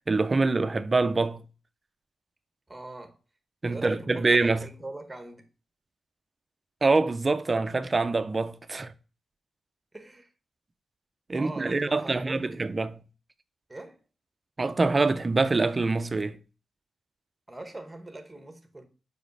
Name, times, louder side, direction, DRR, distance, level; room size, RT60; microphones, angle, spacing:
voice 1, 0.1-1.4 3.6-4.7 6.8-8.9 11.3-13.0 14.6-16.4, right 3 dB, 25° right, 0.4 m, -25 dB
voice 2, 2.7-3.2 3.7-5.5 9.9-10.3 11.3-12.7 13.7-14.0 17.5-18.8, right 2 dB, 10° right, 1.0 m, -42 dB
5.1 x 4.9 x 5.3 m
wide cardioid pair, 165°, 0 cm